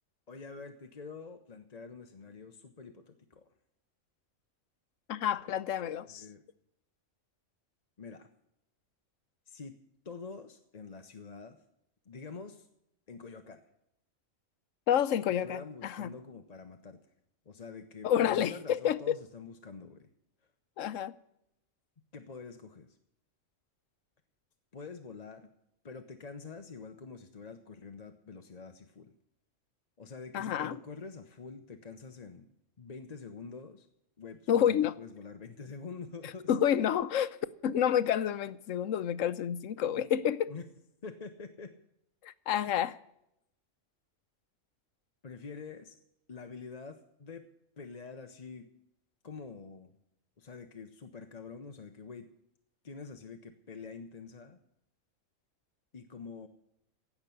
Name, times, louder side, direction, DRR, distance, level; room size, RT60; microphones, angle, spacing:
voice 1, 0.3-3.5 5.4-5.6 6.1-6.4 8.0-8.3 9.5-9.7 10.0-11.6 12.1-12.7 13.1-13.6 15.4-17.0 17.5-20.1 22.1-22.9 24.7-25.5 25.8-29.1 30.0-32.5 32.8-33.9 34.2-36.5 40.5-40.6 41.0-41.7 45.2-45.9 46.3-47.4 47.8-48.7 49.2-50.0 50.4-52.3 52.8-54.6 55.9-56.5, left 4 dB, 35° left, 0.9 m, -46 dB
voice 2, 5.1-6.2 14.9-16.1 18.0-19.2 20.8-21.1 30.3-30.8 34.5-34.9 36.2-37.4 37.6-40.5 42.2-43.0, left 9 dB, 85° left, 1.1 m, -29 dB
16.0 x 6.0 x 9.8 m
omnidirectional pair, 1.3 m